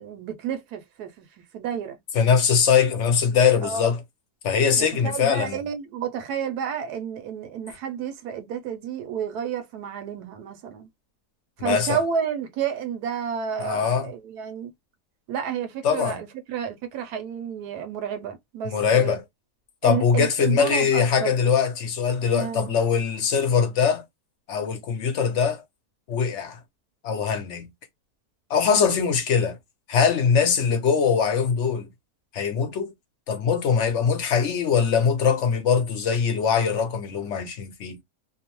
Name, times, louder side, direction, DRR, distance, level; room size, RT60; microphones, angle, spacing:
voice 1, 0.0-2.0 3.6-3.9 4.8-10.9 11.6-14.7 15.3-19.2 19.8-21.4 22.3-22.7, right 7 dB, 85° right, 1.1 m, -31 dB
voice 2, 2.1-4.0 4.4-5.7 11.6-12.0 13.6-14.1 15.8-16.2 18.6-19.2 19.8-24.0 24.5-25.6 26.1-26.6 27.0-27.7 28.5-29.6 29.9-31.9 32.3-32.9 33.3-38.0, left 6 dB, 60° left, 0.8 m, -22 dB
2.7 x 2.0 x 2.9 m
omnidirectional pair, 1.6 m